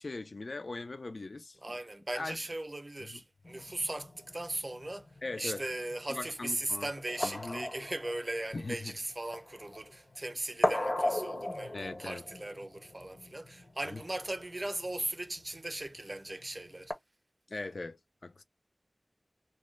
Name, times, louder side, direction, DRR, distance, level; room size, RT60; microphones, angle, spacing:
voice 1, 0.0-1.6 2.2-2.4 5.2-5.6 6.1-6.9 7.2-7.7 8.5-8.9 11.7-12.2 17.5-18.4, left 3 dB, 75° left, 0.4 m, -40 dB
voice 2, 1.6-5.1 5.4-16.9, right 1 dB, 45° right, 0.5 m, -38 dB
sound 1, 3.4-16.9, left 1 dB, 55° left, 0.7 m, -38 dB
2.6 x 2.1 x 3.0 m
wide cardioid pair, 40°, 0 cm